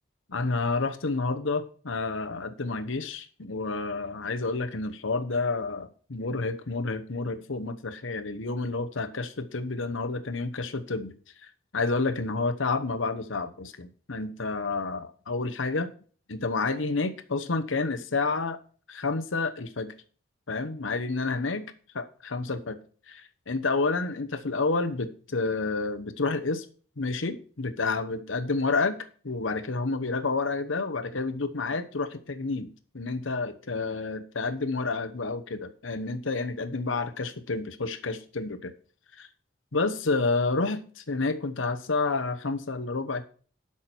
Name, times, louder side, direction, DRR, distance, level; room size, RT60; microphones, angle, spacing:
voice 1, 0.3-11.2 11.4-15.9 16.3-18.6 18.9-19.9 20.5-22.8 23.1-23.2 23.5-26.7 27.0-29.0 29.2-32.7 32.9-38.7 39.2-39.3 39.7-43.3, left 3 dB, 85° left, 9 dB, 1.0 m, -29 dB
12.5 x 6.1 x 4.5 m, 0.42 s
head